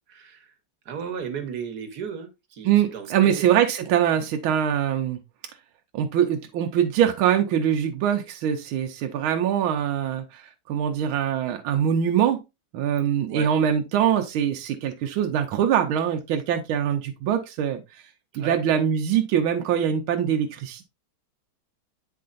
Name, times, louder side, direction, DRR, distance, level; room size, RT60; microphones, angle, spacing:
voice 1, 0.1-0.4 0.9-3.6 13.3-13.5 18.3-18.6, right 7 dB, 55° right, 1.5 m, -35 dB
voice 2, 2.6-5.2 5.9-10.4 10.7-12.4 12.7-17.8 18.4-20.8, right 9 dB, 80° right, 1.6 m, -23 dB
8.5 x 4.7 x 2.5 m
omnidirectional pair, 2.3 m